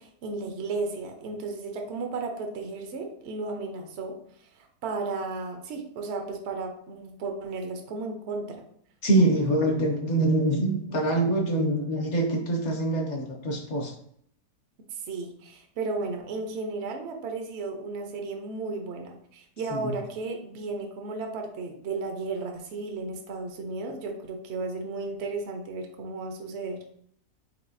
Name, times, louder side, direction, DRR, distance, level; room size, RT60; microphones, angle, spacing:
voice 1, 0.0-4.2 4.6-8.6 14.9-26.8, right 3 dB, 60° right, 3 dB, 0.8 m, -34 dB
voice 2, 9.0-13.9 19.7-19.9, right 2 dB, 55° left, 1 dB, 1.0 m, -24 dB
4.7 x 3.9 x 2.6 m, 0.65 s
omnidirectional pair, 1.8 m